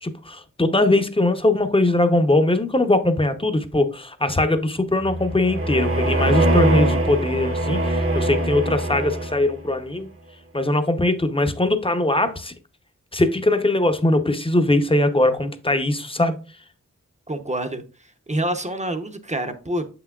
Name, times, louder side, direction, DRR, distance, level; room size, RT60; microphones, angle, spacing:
voice 1, 0.0-10.1 10.5-12.5 13.1-16.4, left 2 dB, 20° left, 0.7 m, -21 dB
sound 1, 5.0-9.6, right 1 dB, 45° right, 0.9 m, -22 dB
voice 2, 17.3-19.9, right 1 dB, 25° right, 0.7 m, -27 dB
7.3 x 5.8 x 2.3 m
wide cardioid pair, 70°, 30 cm